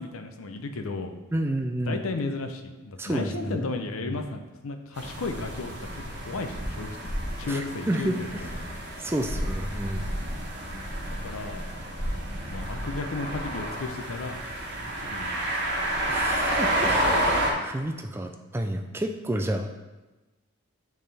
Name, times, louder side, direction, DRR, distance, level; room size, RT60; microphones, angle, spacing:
voice 1, 0.0-1.1 1.9-7.0 7.4-8.5 11.0-11.7 12.5-14.4 15.0-15.7 16.8-17.3, left 3 dB, 85° left, 6 dB, 0.6 m, -34 dB
voice 2, 1.3-2.0 3.0-3.7 4.0-4.1 7.4-8.2 9.0-10.0 16.1-17.1 17.6-19.7, right 1 dB, 10° right, 5 dB, 0.3 m, -30 dB
sound 1, 4.9-17.5, right 1 dB, 55° right, 1.2 m, -30 dB
9.1 x 3.6 x 3.4 m, 1.1 s
head